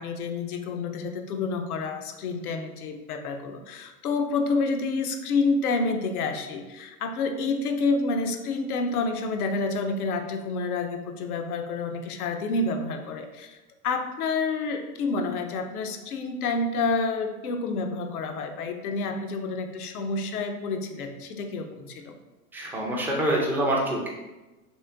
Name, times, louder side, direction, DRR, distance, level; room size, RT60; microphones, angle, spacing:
voice 1, 0.0-13.5 13.8-22.2, left 3 dB, 70° left, 6 dB, 0.6 m, -28 dB
voice 2, 22.5-24.1, right 1 dB, 5° right, -3 dB, 0.4 m, -26 dB
3.2 x 3.0 x 3.3 m, 1.1 s
hypercardioid pair, 95°, 46 cm